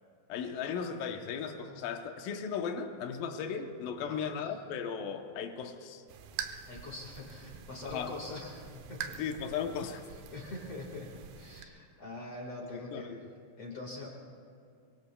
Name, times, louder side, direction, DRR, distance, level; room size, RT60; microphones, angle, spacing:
voice 1, 0.3-6.0 7.8-8.1 9.2-10.0 12.7-13.3, left 7 dB, 85° left, 5 dB, 2.0 m, -36 dB
Dripping Slow A, 6.1-11.6, right 8 dB, 80° right, 2.8 m, -45 dB
voice 2, 6.6-9.2 10.3-13.1 13.6-14.1, left 2 dB, 55° left, -1 dB, 1.7 m, -43 dB
26.0 x 23.5 x 2.3 m, 2.4 s
omnidirectional pair, 5.3 m